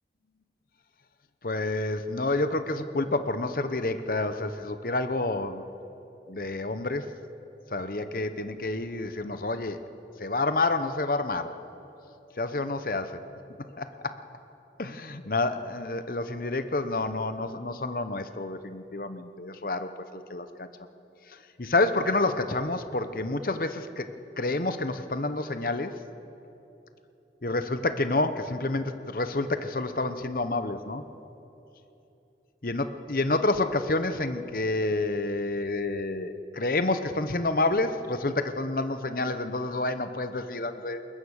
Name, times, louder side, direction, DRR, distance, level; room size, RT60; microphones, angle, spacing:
voice 1, 1.4-5.6 6.3-7.1 7.7-9.8 10.2-11.5 12.4-13.1 13.8-14.2 14.8-20.7 21.3-26.0 27.4-31.0 32.6-41.0, left 2 dB, 50° left, 10 dB, 0.9 m, -29 dB
21.5 x 20.5 x 6.5 m, 2.9 s
head